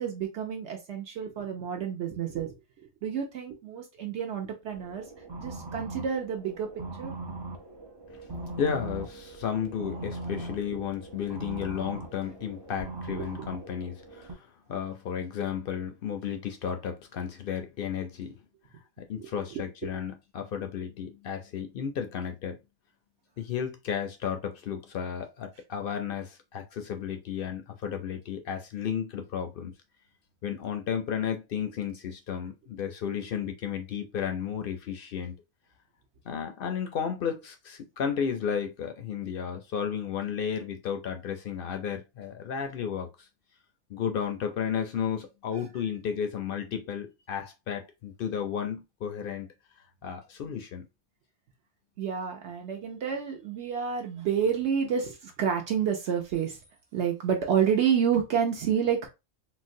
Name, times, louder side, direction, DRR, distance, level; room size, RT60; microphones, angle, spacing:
voice 1, 0.0-2.5 3.0-5.0 5.4-6.7 7.0-7.1 10.7-10.8 13.2-13.3 19.2-19.9 52.0-56.6 56.9-59.1, right 8 dB, 65° right, 0.9 m, -29 dB
sound 1, 4.7-14.3, right 2 dB, 40° right, 0.3 m, -40 dB
voice 2, 8.6-18.4 19.0-22.6 23.4-29.7 30.4-35.4 36.3-43.1 43.9-49.5 50.0-50.8, left 8 dB, 60° left, 0.6 m, -33 dB
3.8 x 2.2 x 2.5 m
omnidirectional pair, 1.3 m